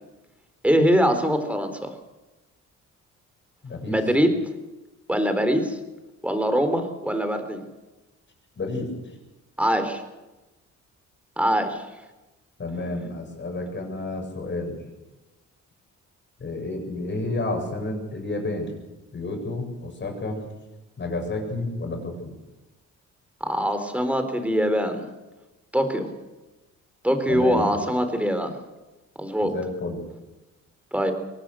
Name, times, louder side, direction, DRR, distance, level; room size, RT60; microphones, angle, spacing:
voice 1, 0.6-1.9 3.9-4.3 5.1-5.8 6.2-7.6 9.6-10.0 11.4-11.8 23.4-25.0 25.7-26.1 27.0-28.5 29.2-29.5 30.9-31.1, equal, 5° right, 8 dB, 4.0 m, -23 dB
voice 2, 3.6-4.0 8.6-8.9 12.6-14.9 16.4-18.7 19.1-20.4 21.0-22.3 27.3-27.7 29.5-30.1, left 2 dB, 40° left, 3 dB, 8.0 m, -30 dB
23.5 x 19.0 x 6.5 m, 1.1 s
cardioid pair, 90°, 30 cm